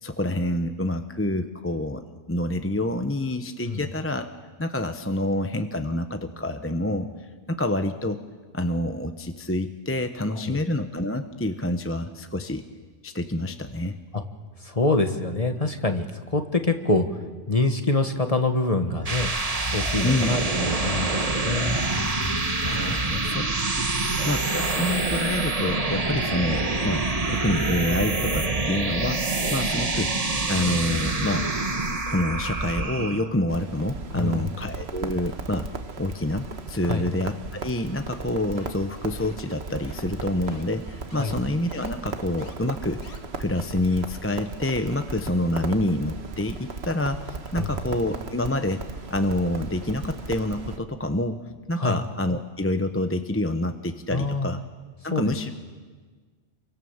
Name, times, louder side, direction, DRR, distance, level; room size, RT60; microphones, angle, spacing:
voice 1, 0.0-4.3 4.6-8.2 8.5-12.6 13.0-14.0 20.0-20.3 22.6-23.8 24.3-31.5 32.1-35.7 36.0-48.8 49.1-51.4 51.7-54.6 55.0-55.5, left 1 dB, 10° left, 7 dB, 0.9 m, -27 dB
voice 2, 14.6-19.3 19.7-22.5 22.9-23.3 24.0-24.2 34.1-34.5 36.9-37.1 41.1-41.4 47.6-47.8 51.7-52.0 54.1-54.6 55.1-55.3, left 2 dB, 30° left, 6 dB, 1.6 m, -26 dB
sound 1, 18.8-33.3, right 3 dB, 30° right, 1.4 m, -26 dB
Crackle, 33.5-50.8, right 4 dB, 60° right, 1.6 m, -37 dB
sound 2, 38.6-38.9 39.2-39.5 39.8-40.1 40.5-40.6 41.1-41.3 41.7-41.9 42.4-42.5 43.0-43.2, left 3 dB, 70° left, 2.3 m, -46 dB
28.5 x 24.0 x 7.3 m, 1.5 s
omnidirectional pair, 1.2 m